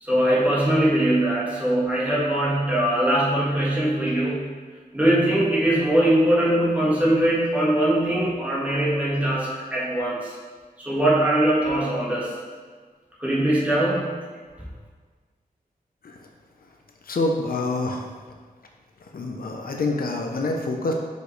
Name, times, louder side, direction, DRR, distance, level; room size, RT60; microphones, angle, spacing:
voice 1, 0.0-4.5 4.9-10.3 10.8-12.3 13.2-14.1, right 1 dB, 10° right, -7 dB, 1.7 m, -21 dB
voice 2, 17.0-18.1 19.0-20.9, left 2 dB, 75° left, 1 dB, 0.7 m, -26 dB
6.4 x 5.1 x 3.2 m, 1.5 s
wide cardioid pair, 115°, 15 cm